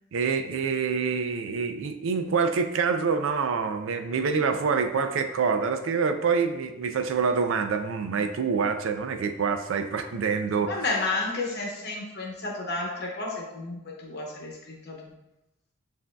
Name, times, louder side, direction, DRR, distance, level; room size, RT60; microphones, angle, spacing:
voice 1, 0.1-10.8, right 5 dB, 75° right, 8 dB, 0.4 m, -26 dB
voice 2, 10.7-15.1, left 3 dB, 55° left, 0 dB, 0.9 m, -32 dB
7.3 x 2.6 x 2.3 m, 0.91 s
head